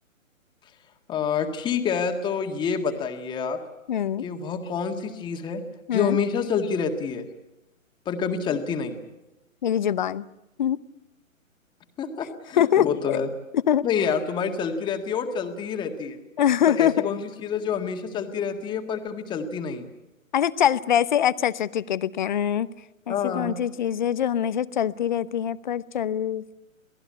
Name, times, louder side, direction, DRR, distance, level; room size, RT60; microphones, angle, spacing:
voice 1, 1.1-3.6 4.2-5.6 5.9-7.3 8.1-9.0 12.0-13.3 13.8-16.2 16.7-19.8 23.1-23.6, left 6 dB, 10° left, 6 dB, 1.8 m, -27 dB
voice 2, 3.9-4.2 5.9-6.2 9.6-10.2 10.6-10.8 12.6-13.2 13.7-13.8 16.4-17.1 20.3-22.7 23.1-26.6, left 10 dB, 35° left, 18 dB, 0.8 m, -23 dB
28.0 x 18.5 x 8.6 m, 0.99 s
figure-of-eight pair, 135°, 41 cm